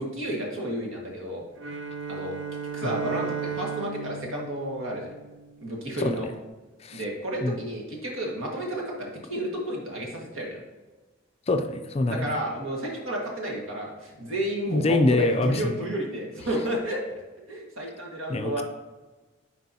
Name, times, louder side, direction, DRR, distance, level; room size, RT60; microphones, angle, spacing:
voice 1, 0.0-1.4 2.1-2.3 2.7-5.2 5.6-6.3 6.9-10.6 12.1-17.0 17.5-18.6, right 1 dB, 75° right, -1 dB, 1.7 m, -31 dB
Bowed string instrument, 1.6-5.8, right 6 dB, 60° right, 0.5 m, -35 dB
voice 2, 11.5-12.3 14.7-15.8 18.3-18.6, left 2 dB, 30° left, 6 dB, 0.4 m, -24 dB
10.0 x 4.4 x 2.8 m, 1.2 s
head